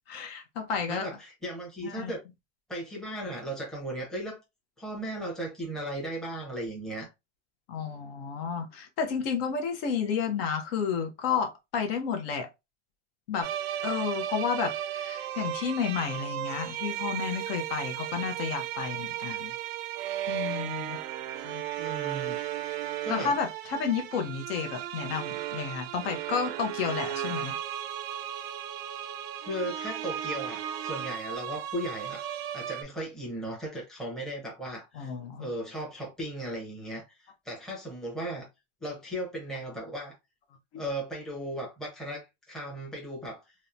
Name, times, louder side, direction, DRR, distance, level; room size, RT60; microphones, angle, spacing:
voice 1, 0.1-1.1 1.8-2.1 7.7-12.5 13.3-13.5 13.8-19.5 20.3-21.0 21.4-21.6 23.1-27.6 35.0-35.5 40.7-40.8, left 6 dB, 55° left, 0.6 m, -31 dB
voice 2, 0.9-2.2 2.7-4.4 4.8-7.1 21.8-22.4 23.0-23.4 29.4-32.2 32.5-35.1 35.4-38.5 38.8-40.1 40.8-43.5, right 1 dB, ahead, 0.7 m, -36 dB
sound 1, 13.4-32.8, right 11 dB, 55° right, 0.4 m, -35 dB
2.8 x 2.1 x 2.4 m
supercardioid pair, 155°, 37 cm